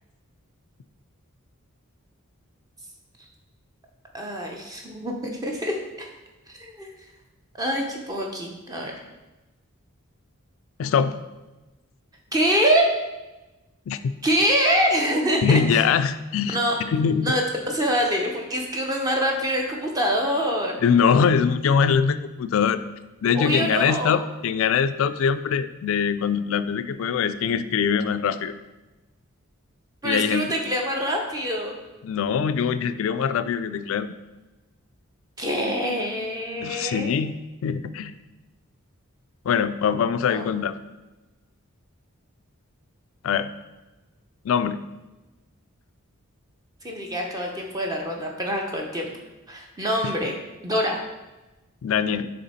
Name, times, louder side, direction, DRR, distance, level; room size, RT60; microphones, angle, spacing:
voice 1, 4.1-6.1 6.6-6.9 7.6-8.9 12.3-12.9 14.2-15.8 16.5-16.7 17.2-17.4 17.7-20.8 23.3-24.2 30.0-31.7 35.4-37.1 40.3-40.5 46.8-49.1 49.5-50.3 50.6-51.0, equal, 15° right, 0 dB, 0.6 m, -25 dB
voice 2, 10.8-11.2 13.9-14.1 15.4-17.3 20.8-22.8 23.2-28.5 30.0-30.6 32.0-34.1 36.6-38.1 39.5-40.7 43.2-43.5 44.4-44.8 51.8-52.3, left 6 dB, 65° left, 12 dB, 0.3 m, -23 dB
6.6 x 3.4 x 4.1 m, 1.1 s
head